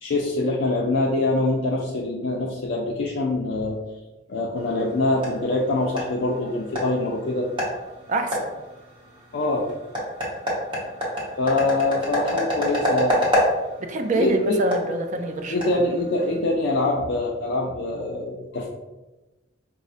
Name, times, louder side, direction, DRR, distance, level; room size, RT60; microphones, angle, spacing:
voice 1, 0.0-3.8 4.3-7.5 9.3-9.7 11.4-13.2 14.1-14.6 15.5-18.7, left 2 dB, 65° left, -1 dB, 0.4 m, -24 dB
sound 1, 4.6-16.4, equal, 25° right, 0.9 m, -28 dB
voice 2, 8.1-8.5 13.9-15.8, right 2 dB, 40° right, 6 dB, 0.3 m, -26 dB
5.1 x 2.1 x 2.5 m, 1.1 s
head